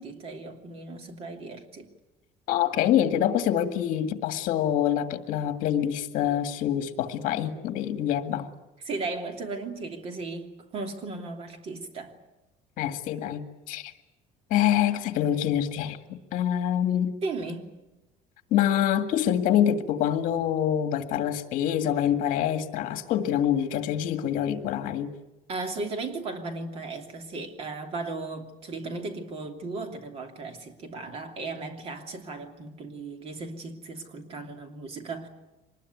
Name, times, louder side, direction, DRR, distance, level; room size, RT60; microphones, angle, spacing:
voice 1, 0.0-1.9 8.8-12.2 17.2-17.8 25.5-35.3, right 3 dB, 40° right, 3.0 m, -36 dB
voice 2, 2.5-8.5 12.8-13.9 14.5-16.0 16.3-17.1 18.5-25.1, left 10 dB, 55° left, 2.0 m, -25 dB
24.5 x 21.0 x 9.4 m
cardioid pair, 170°, 16 cm